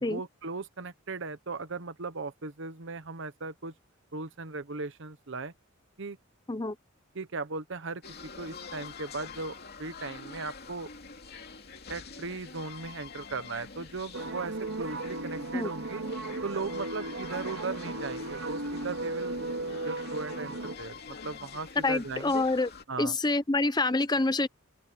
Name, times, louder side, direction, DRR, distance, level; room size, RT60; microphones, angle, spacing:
voice 1, 0.1-3.7 4.1-5.5 6.0-6.2 7.1-8.0 8.4-10.9 11.9-16.0 16.4-19.4 19.8-22.4 22.9-23.1, right 3 dB, 65° right, 1.0 m, -37 dB
sound 1, 8.0-22.8, left 5 dB, 50° left, 2.8 m, -46 dB
sound 2, 14.1-20.8, right 2 dB, 80° right, 2.4 m, -36 dB
voice 2, 21.8-22.7 23.0-24.5, left 2 dB, 20° left, 0.7 m, -27 dB
open air
head